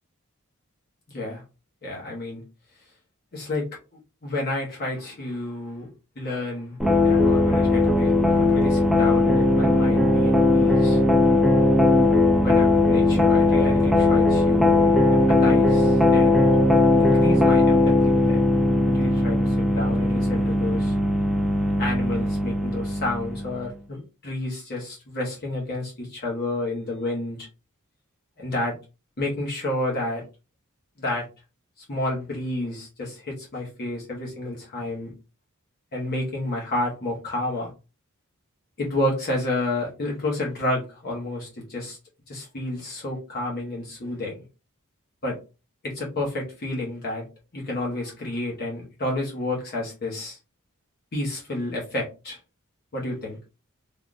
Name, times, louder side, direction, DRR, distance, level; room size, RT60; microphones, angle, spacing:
voice 1, 1.1-1.4 1.8-2.4 3.3-5.9 6.2-6.8 7.0-11.0 12.4-16.5 17.0-18.4 18.8-20.9 21.8-27.5 28.4-28.8 29.2-30.2 31.0-31.3 31.8-35.1 35.9-37.7 38.8-42.0 42.3-44.4 45.2-45.4 45.8-47.3 47.5-50.4 51.1-52.4 52.9-53.4, left 2 dB, 45° left, -3 dB, 1.0 m, -30 dB
sound 1, 6.8-23.5, left 2 dB, ahead, 0.5 m, -19 dB
3.5 x 2.3 x 2.4 m, 0.30 s
head